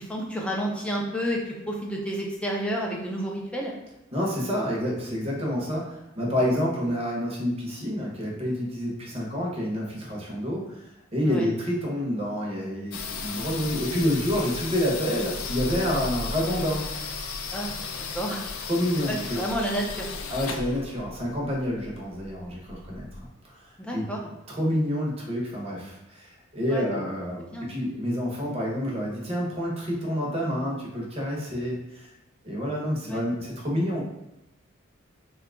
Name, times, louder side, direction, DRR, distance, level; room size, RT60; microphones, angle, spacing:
voice 1, 0.0-3.7 6.4-6.5 11.2-11.5 17.5-18.4 19.1-20.1 23.8-24.3 26.7-27.0 27.4-27.7 33.0-33.2, equal, 5° left, -2 dB, 0.5 m, -31 dB
voice 2, 4.1-16.8 18.7-19.4 20.3-23.1 23.5-24.0 24.5-27.4 27.7-32.1 32.4-34.0, equal, 30° right, -3 dB, 0.8 m, -28 dB
sound 1, 12.9-23.3, left 4 dB, 85° left, 0.4 m, -35 dB
2.8 x 2.3 x 3.6 m, 0.94 s
head